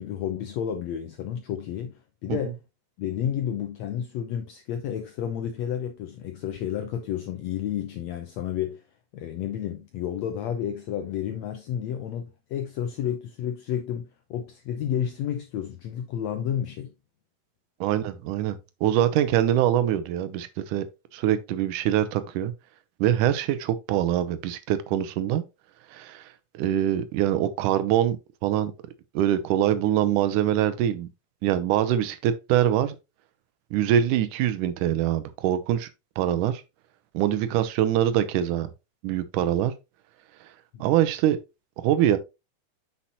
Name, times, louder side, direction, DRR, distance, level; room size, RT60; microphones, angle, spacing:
voice 1, 0.0-2.6 3.0-8.8 9.1-16.9 40.7-40.9, left 9 dB, 75° left, 1.6 m, -31 dB
voice 2, 17.8-20.8 21.1-22.5 23.0-25.4 25.9-26.2 26.5-28.2 28.4-28.7 29.1-31.1 31.4-33.0 33.7-35.9 36.2-36.6 37.1-38.7 39.0-39.7 40.8-41.4 41.8-42.2, right 11 dB, 80° right, 2.2 m, -24 dB
8.5 x 5.7 x 2.9 m
omnidirectional pair, 3.9 m